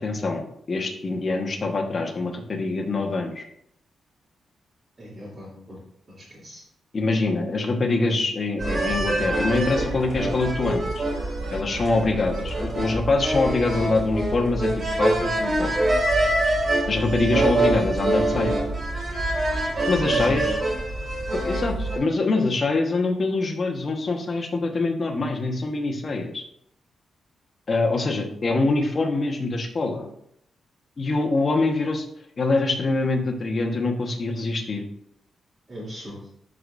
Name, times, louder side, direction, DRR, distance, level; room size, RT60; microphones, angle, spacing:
voice 1, 0.0-3.4 6.9-11.0 11.5-14.7 15.0-15.8 16.9-18.6 19.9-20.6 21.3-26.4 27.7-30.1 31.0-32.0 32.4-34.8, left 3 dB, 35° left, 2 dB, 1.3 m, -24 dB
voice 2, 5.0-5.8 6.4-6.6 19.8-20.6 35.7-36.2, equal, 30° right, -9 dB, 2.8 m, -37 dB
sound 1, 8.6-22.0, right 2 dB, 45° right, 3.2 m, -25 dB
12.5 x 4.9 x 2.6 m, 0.71 s
wide cardioid pair, 135°, 0 cm